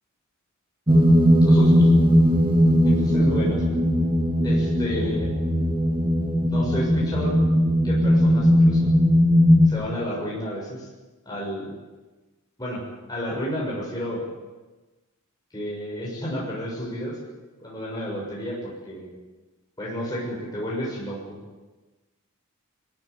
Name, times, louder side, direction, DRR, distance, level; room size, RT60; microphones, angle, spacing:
sound 1, 0.9-9.7, equal, 20° right, 1.9 m, -18 dB
voice 1, 1.4-1.9 2.8-3.6 4.4-5.3 6.4-7.3 7.8-8.9 9.7-10.9 11.2-11.7 12.6-12.8 13.1-14.2 15.5-17.2 17.6-19.1 19.8-21.4, equal, 20° left, -5 dB, 6.7 m, -31 dB
22.5 x 15.5 x 9.5 m, 1.2 s
head